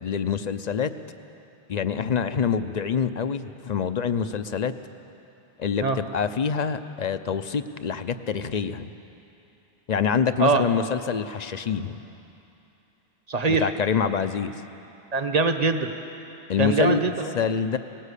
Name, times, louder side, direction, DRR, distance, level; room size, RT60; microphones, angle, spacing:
voice 1, 0.0-0.9 1.7-4.7 5.6-8.9 9.9-12.0 13.6-14.5 16.5-17.0 17.3-17.8, left 6 dB, 50° left, 11 dB, 0.7 m, -26 dB
voice 2, 13.3-13.7 15.1-15.9 16.6-17.3, right 3 dB, 40° right, 7 dB, 1.1 m, -22 dB
19.0 x 17.5 x 8.3 m, 2.9 s
omnidirectional pair, 1.0 m